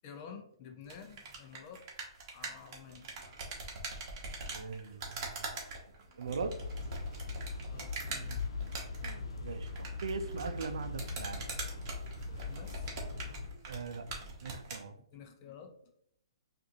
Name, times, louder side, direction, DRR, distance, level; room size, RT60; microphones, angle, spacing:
voice 1, 0.0-1.8 2.3-3.5 7.7-8.4 12.3-12.9 15.1-15.7, left 7 dB, 30° left, 5 dB, 0.6 m, -51 dB
sound 1, 0.8-14.9, right 3 dB, 35° right, 1.1 m, -44 dB
voice 2, 4.5-5.5 6.2-6.6 9.0-11.5 13.7-14.0 14.4-14.9, right 5 dB, 80° right, 9 dB, 0.5 m, -40 dB
sound 2, 6.3-13.5, left 4 dB, 90° left, 0.9 m, -40 dB
4.9 x 2.6 x 2.8 m, 0.70 s
hypercardioid pair, 155°, 3 cm